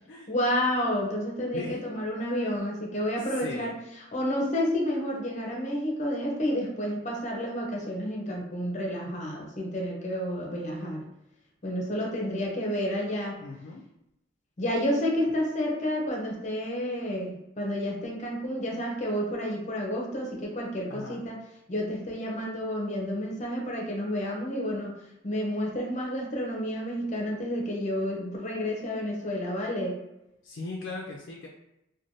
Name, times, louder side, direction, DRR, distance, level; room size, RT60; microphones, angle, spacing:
voice 1, 0.3-3.8 4.1-11.1 11.6-13.4 14.6-21.4 21.7-25.0 25.2-30.0, equal, 40° left, -1 dB, 0.7 m, -30 dB
voice 2, 3.2-3.7 13.4-13.8 20.9-21.2 30.4-31.5, left 3 dB, 70° left, 0 dB, 0.4 m, -38 dB
3.2 x 2.2 x 2.6 m, 0.87 s
head